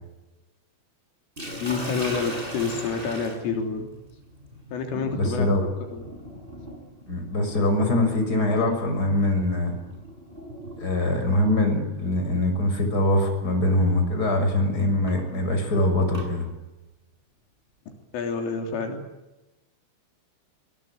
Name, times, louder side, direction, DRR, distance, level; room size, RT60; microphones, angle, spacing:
Sink (filling or washing), 1.4-11.3 12.4-12.7 13.2-13.3 14.8-16.3, right 1 dB, 10° right, 7.2 m, -40 dB
voice 1, 1.6-3.9 4.7-5.5 5.9-6.0 18.1-19.0, left 5 dB, 75° left, 3 dB, 5.8 m, -28 dB
voice 2, 4.9-5.6 7.1-9.7 10.8-16.5, left 1 dB, 20° left, 5 dB, 6.4 m, -23 dB
23.5 x 23.0 x 9.0 m, 1.0 s
omnidirectional pair, 5.8 m